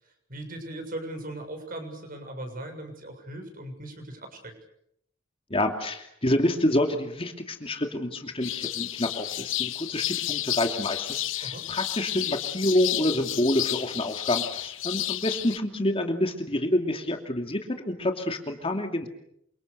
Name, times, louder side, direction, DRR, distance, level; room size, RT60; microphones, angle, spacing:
voice 1, 0.0-4.5 11.4-11.7, right 1 dB, 45° right, 5 dB, 7.0 m, -39 dB
voice 2, 5.5-19.1, left 1 dB, 30° left, 4 dB, 2.7 m, -27 dB
birds at dawn, 8.4-15.6, left 14 dB, 80° left, 1.2 m, -31 dB
28.5 x 26.0 x 6.9 m, 0.75 s
head